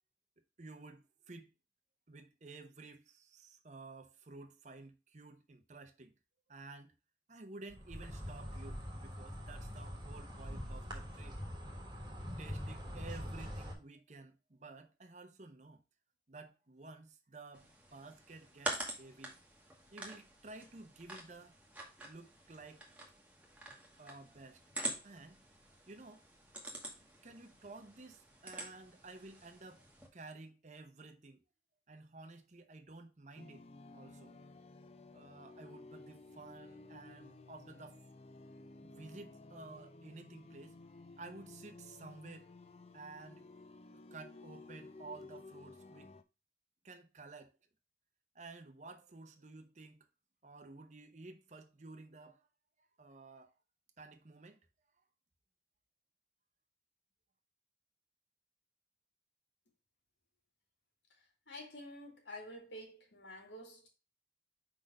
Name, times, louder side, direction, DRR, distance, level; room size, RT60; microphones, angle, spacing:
voice 1, 0.6-1.5 2.1-6.1 6.5-6.9 7.3-11.4 12.4-15.8 16.3-19.4 19.9-21.6 22.0-22.8 24.0-24.6 25.0-25.4 25.9-26.3 27.2-31.4 31.9-33.7 33.9-34.3 35.1-38.0 38.8-40.8 41.2-42.5 42.9-43.5 43.9-46.1 46.8-47.5 48.3-50.1 50.4-52.5 53.0-53.5 54.0-54.6, right 3 dB, 40° right, 0.8 m, -53 dB
Insect, 7.7-13.7, equal, 25° right, 1.3 m, -44 dB
sound 1, 17.5-30.1, right 2 dB, 10° right, 1.2 m, -47 dB
sound 2, 33.4-46.2, left 3 dB, 35° left, 0.5 m, -55 dB
voice 2, 61.5-63.9, left 1 dB, 85° left, 2.1 m, -49 dB
5.0 x 4.0 x 5.2 m
head